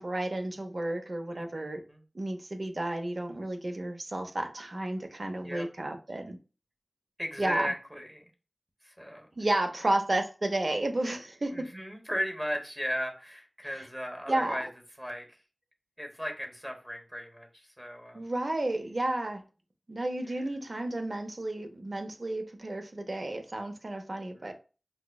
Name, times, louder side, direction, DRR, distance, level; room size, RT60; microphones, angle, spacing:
voice 1, 0.0-1.8 2.1-6.4 7.4-7.7 9.4-11.7 14.3-14.6 18.1-19.4 19.9-24.5, right 1 dB, 60° right, 0.6 m, -32 dB
voice 2, 1.3-2.0 5.4-5.7 7.2-8.3 8.8-9.3 11.5-14.7 15.0-15.4 16.0-18.3 20.2-20.4 24.3-24.5, equal, 10° right, 1.1 m, -36 dB
5.6 x 2.0 x 2.2 m
wide cardioid pair, 50°, 0 cm